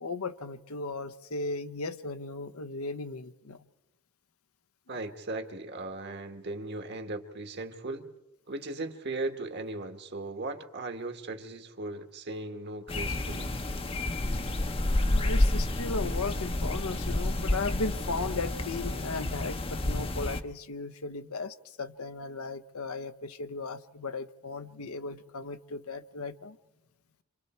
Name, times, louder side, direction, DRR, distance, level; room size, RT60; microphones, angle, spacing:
voice 1, 0.0-3.6 15.0-26.6, left 3 dB, 75° left, 12 dB, 0.9 m, -36 dB
voice 2, 4.9-8.1 8.5-13.6, right 2 dB, 50° right, 7 dB, 1.6 m, -37 dB
sound 1, 12.9-20.4, left 1 dB, 25° left, 0.8 m, -29 dB
27.0 x 27.0 x 4.4 m, 0.99 s
head